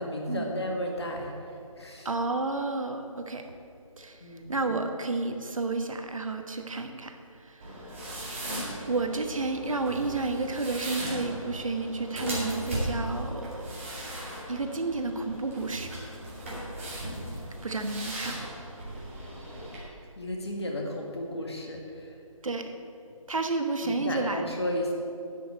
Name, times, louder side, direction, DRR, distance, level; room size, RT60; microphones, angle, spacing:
voice 1, 0.0-2.1 4.2-4.7 20.2-22.2 23.8-24.9, left 1 dB, 50° left, 0 dB, 1.9 m, -34 dB
voice 2, 2.0-3.5 4.0-8.5 8.9-13.7 14.5-15.9 17.6-18.5 22.4-22.7 23.3-24.5, right 3 dB, 70° right, 6 dB, 1.2 m, -31 dB
sound 1, 7.6-19.8, right 1 dB, 25° right, 2.3 m, -37 dB
11.0 x 5.6 x 8.0 m, 2.6 s
figure-of-eight pair, 175°, 18 cm